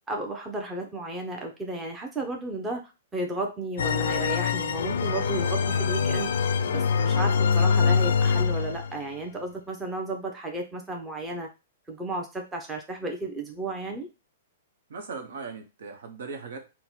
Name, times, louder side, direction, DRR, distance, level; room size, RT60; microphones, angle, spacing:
voice 1, 0.1-2.8 3.1-6.3 6.7-11.5 11.9-14.1, right 2 dB, 10° right, 2 dB, 0.7 m, -33 dB
sound 1, 3.8-9.0, left 6 dB, 85° left, 0.4 m, -24 dB
voice 2, 14.9-16.7, right 4 dB, 75° right, 4 dB, 0.9 m, -38 dB
3.9 x 2.1 x 4.4 m, 0.28 s
hypercardioid pair, 150°, 0 cm